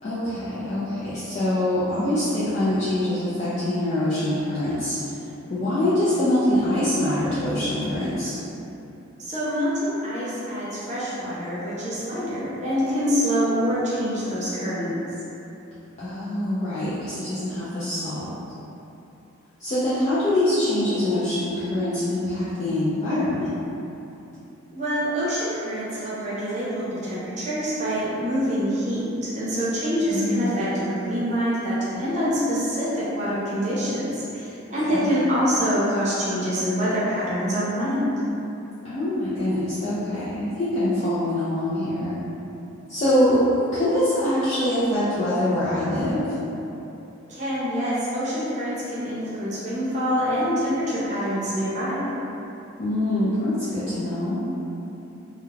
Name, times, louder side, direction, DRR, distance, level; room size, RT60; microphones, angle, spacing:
voice 1, 0.0-5.0 5.5-8.3 16.0-18.3 19.6-23.5 30.1-30.6 34.9-35.2 38.8-42.2 42.9-46.2 52.8-54.4, left 1 dB, 35° left, -11 dB, 0.3 m, -24 dB
voice 2, 9.2-14.9 24.7-38.0 47.3-52.0, equal, 35° right, -10 dB, 0.7 m, -25 dB
2.3 x 2.1 x 3.1 m, 2.9 s
head